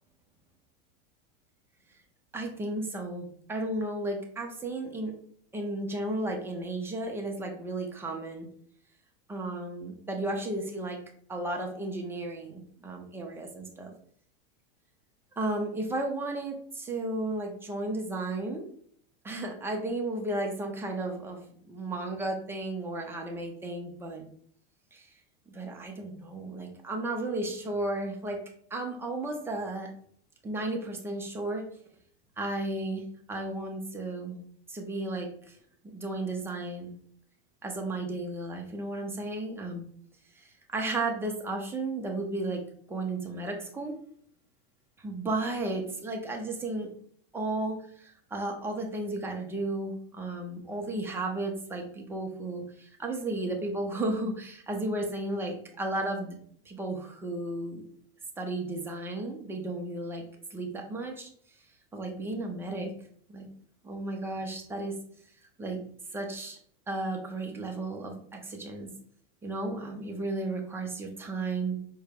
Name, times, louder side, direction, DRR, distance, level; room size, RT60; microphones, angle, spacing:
voice 1, 2.3-5.1 5.5-8.5 9.3-11.0 11.3-13.9 15.4-18.7 19.2-24.3 24.9-25.1 25.5-28.4 28.7-29.9 30.4-31.7 32.4-34.4 34.7-35.6 35.9-36.9 37.6-39.8 40.4-44.0 45.0-46.9 47.3-56.4 56.7-57.8 58.4-60.2 60.5-61.3 61.9-62.9 63.3-63.5 63.8-65.0 65.6-65.8 66.1-66.6 66.9-68.9 69.4-71.8, right 2 dB, 5° right, 1 dB, 0.4 m, -34 dB
4.7 x 2.2 x 3.3 m, 0.62 s
supercardioid pair, 140°, 32 cm